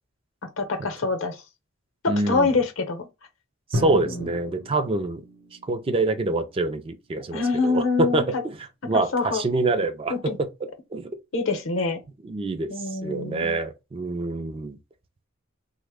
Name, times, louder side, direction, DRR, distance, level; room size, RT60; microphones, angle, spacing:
voice 1, 0.6-1.4 2.0-3.1 3.8-4.3 7.3-8.2 8.9-9.4 10.1-10.4 11.3-12.0 12.7-13.6, left 4 dB, 70° left, 0.7 m, -25 dB
voice 2, 2.1-2.5 3.7-5.2 5.7-8.6 8.8-11.1 12.2-14.8, right 2 dB, 25° right, 0.3 m, -26 dB
Drum, 3.7-7.5, equal, 70° right, 0.8 m, -36 dB
3.2 x 2.1 x 3.4 m
head